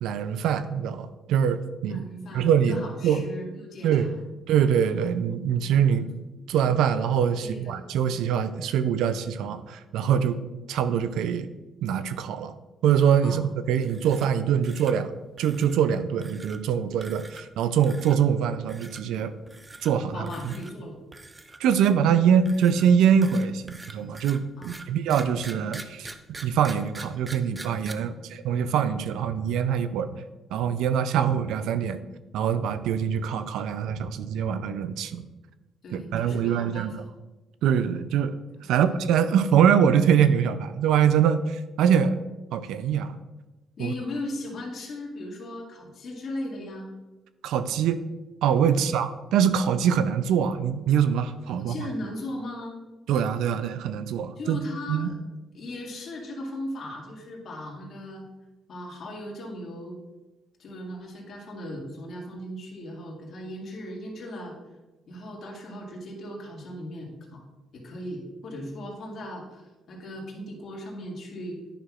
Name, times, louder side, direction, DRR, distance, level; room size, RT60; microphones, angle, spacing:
voice 1, 0.0-2.0 2.3-3.3 3.8-4.1 4.5-6.0 6.5-10.4 10.7-11.5 11.8-12.5 12.8-13.4 13.7-15.1 15.4-19.3 19.8-20.5 21.6-26.1 26.4-30.1 30.5-32.0 32.3-35.2 35.9-36.9 37.6-38.3 38.7-42.2 42.5-43.1 43.8-43.9 47.4-48.0 48.4-51.9 53.1-54.6 54.9-55.1, right 8 dB, 85° right, 12 dB, 0.4 m, -23 dB
voice 2, 1.9-4.3 5.9-6.1 7.4-7.9 13.2-13.5 20.1-21.0 24.6-24.9 27.9-28.2 35.8-37.0 38.6-39.0 43.8-46.9 48.7-48.9 51.5-52.8 54.4-55.2 55.5-58.3 58.7-60.0 60.6-64.5 65.1-67.4 67.7-71.6, left 1 dB, 60° left, -1 dB, 1.9 m, -38 dB
sound 1, 13.8-14.4 14.6-14.9 15.4-15.8 16.2-16.6 17.0-17.5 17.8-18.2 18.7-19.0 19.5-19.9 20.3-20.7 21.1-22.0 22.5-27.9, right 2 dB, 20° right, 0.5 m, -44 dB
10.0 x 5.8 x 2.4 m, 1.1 s
cardioid pair, 90°, 0 cm